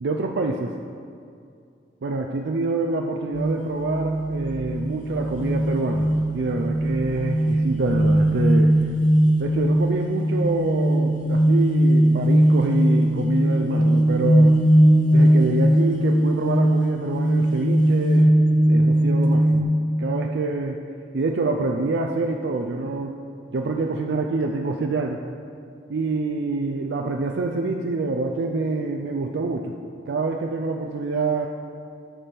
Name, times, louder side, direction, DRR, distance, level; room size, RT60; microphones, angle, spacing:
voice 1, 0.0-0.8 2.0-6.1 6.3-8.7 9.4-14.6 15.1-19.7 20.0-20.8 21.1-23.2 23.5-25.2 25.9-29.7 30.1-31.5, right 3 dB, 70° right, 2 dB, 0.4 m, -26 dB
sound 1, 3.3-19.6, right 1 dB, 50° left, 0.5 m, -19 dB
12.5 x 5.9 x 3.4 m, 2.4 s
head